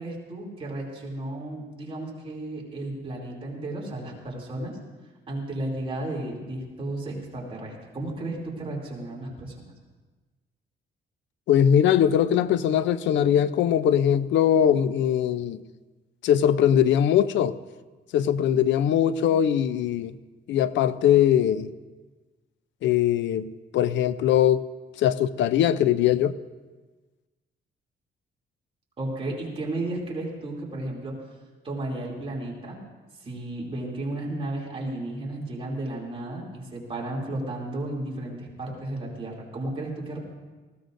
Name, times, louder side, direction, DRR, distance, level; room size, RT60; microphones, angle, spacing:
voice 1, 0.0-4.8 5.3-9.7 29.0-31.1 31.6-32.8 33.2-40.2, right 2 dB, 30° right, -3 dB, 2.9 m, -33 dB
voice 2, 11.5-15.6 16.2-17.6 18.1-20.1 20.5-21.7 22.8-24.7 25.0-26.4, left 10 dB, 80° left, 14 dB, 0.6 m, -21 dB
19.5 x 15.5 x 2.6 m, 1.3 s
cardioid pair, 140°, 19 cm